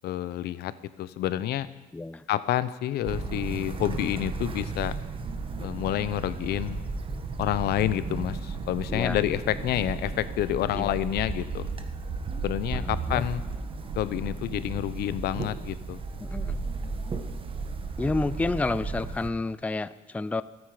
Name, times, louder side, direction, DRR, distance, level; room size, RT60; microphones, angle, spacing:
voice 1, 0.0-0.7 1.0-1.7 2.3-4.9 5.6-6.8 7.4-11.7 12.4-13.4 14.0-16.0, left 13 dB, 70° left, 15 dB, 0.8 m, -28 dB
voice 2, 1.9-2.2 8.9-9.2 10.7-10.9 12.7-13.3 16.2-16.6 18.0-20.4, left 3 dB, 10° left, 15 dB, 0.4 m, -30 dB
sound 1, 3.0-19.3, right 4 dB, 30° right, 1.2 m, -34 dB
26.0 x 9.6 x 5.0 m, 1.1 s
cardioid pair, 110°, 17 cm